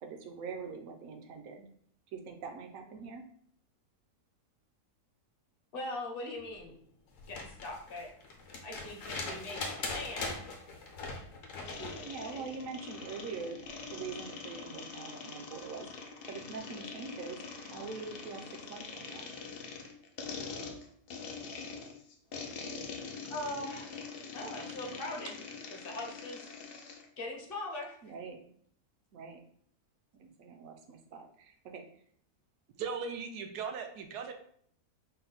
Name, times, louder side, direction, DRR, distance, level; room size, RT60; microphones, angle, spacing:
voice 1, 0.0-1.6 2.1-3.2 12.0-13.6 13.9-18.4 18.7-19.3 25.2-25.3 28.0-28.4 29.1-29.4 30.2-31.9, right 5 dB, 70° right, 4 dB, 0.9 m, -43 dB
voice 2, 5.7-6.8 7.3-8.1 8.6-10.4 11.6-12.5 23.3-24.0 24.3-25.3 25.7-26.5 27.2-28.0, left 1 dB, 45° left, 0 dB, 0.8 m, -41 dB
sound 1, 7.2-12.0 13.6-13.7, left 3 dB, 60° left, 1.1 m, -40 dB
sound 2, 11.7-27.1, left 5 dB, 80° left, 0.5 m, -44 dB
voice 3, 32.8-34.3, right 5 dB, 90° right, 5 dB, 1.2 m, -38 dB
4.3 x 2.1 x 3.9 m, 0.62 s
omnidirectional pair, 1.7 m